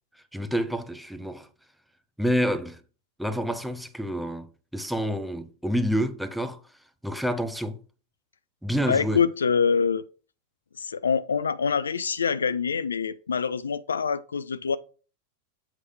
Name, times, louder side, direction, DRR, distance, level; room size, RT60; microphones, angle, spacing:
voice 1, 0.3-1.5 2.2-2.8 3.2-6.6 7.0-7.8 8.6-9.2, equal, ahead, 0.7 m, -28 dB
voice 2, 8.9-10.0 10.8-14.8, left 6 dB, 70° left, 0.4 m, -25 dB
7.3 x 3.2 x 5.4 m
figure-of-eight pair, 90°, 0 cm